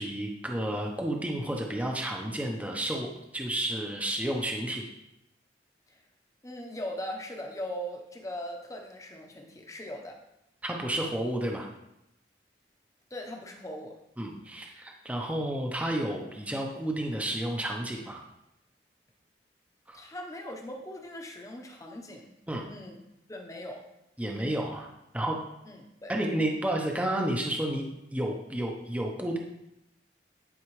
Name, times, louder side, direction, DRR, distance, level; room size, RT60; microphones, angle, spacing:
voice 1, 0.0-4.8 10.6-11.7 14.2-18.2 19.9-20.0 22.5-22.6 24.2-24.9 25.1-25.4 26.1-27.8 28.1-29.4, right 1 dB, 10° right, 1 dB, 0.8 m, -31 dB
voice 2, 6.4-10.2 13.1-14.0 19.9-22.3 22.7-23.0 23.3-23.8 25.6-26.2, equal, 20° left, 2 dB, 0.9 m, -40 dB
10.5 x 4.8 x 3.2 m, 0.88 s
head